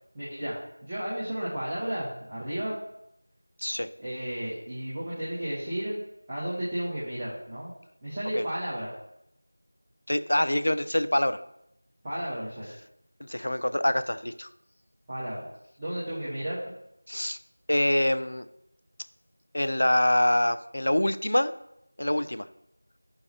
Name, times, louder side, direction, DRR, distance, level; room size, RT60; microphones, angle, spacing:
voice 1, 0.1-2.7 4.0-6.0 6.3-7.7 8.0-8.9 12.0-12.7 15.1-15.5 15.8-16.6, right 1 dB, 15° right, -10 dB, 1.0 m, -33 dB
voice 2, 10.1-11.4 13.2-14.5 17.1-17.4 17.7-18.5 19.5-21.5 22.0-22.5, left 1 dB, 50° left, 12 dB, 0.4 m, -25 dB
9.5 x 5.7 x 2.8 m, 0.81 s
figure-of-eight pair, 175°, 0 cm